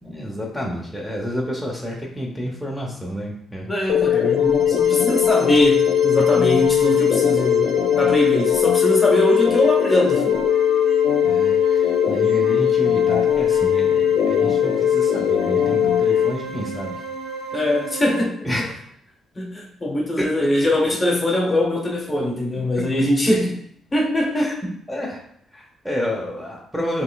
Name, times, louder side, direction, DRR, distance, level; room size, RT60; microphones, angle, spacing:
voice 1, 0.0-3.7 4.7-4.8 6.4-6.5 11.2-17.0 18.4-18.8 24.4-24.5 24.9-25.2 25.5-27.0, equal, ahead, -1 dB, 0.9 m, -29 dB
voice 2, 3.7-10.4 17.5-18.4 19.3-23.6 23.9-24.6, left 1 dB, 25° left, 0 dB, 1.0 m, -22 dB
sound 1, 3.9-16.3, left 9 dB, 80° left, 0.3 m, -19 dB
sound 2, 4.1-18.2, right 4 dB, 90° right, 0.9 m, -33 dB
6.3 x 3.1 x 2.4 m, 0.69 s
cardioid pair, 90°, 0 cm